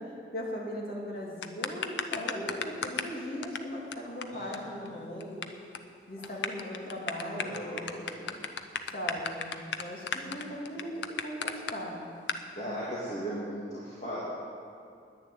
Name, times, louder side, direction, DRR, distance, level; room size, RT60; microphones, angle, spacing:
voice 1, 0.0-5.5 6.1-7.8 8.9-9.5 9.8-12.0, equal, 55° left, -4 dB, 2.7 m, -38 dB
sound 1, 1.4-3.1 3.4-3.6 3.9-4.0 4.2-4.3 4.5-4.6 4.9-5.4 5.7-5.9 6.2-11.7 12.3-12.4, left 6 dB, 90° left, 0.8 m, -34 dB
voice 2, 2.3-2.6 4.3-4.9 6.2-6.4 7.3-8.4 10.2-10.5 12.5-14.2, equal, 40° left, -8 dB, 2.3 m, -39 dB
10.5 x 10.0 x 9.2 m, 2.4 s
head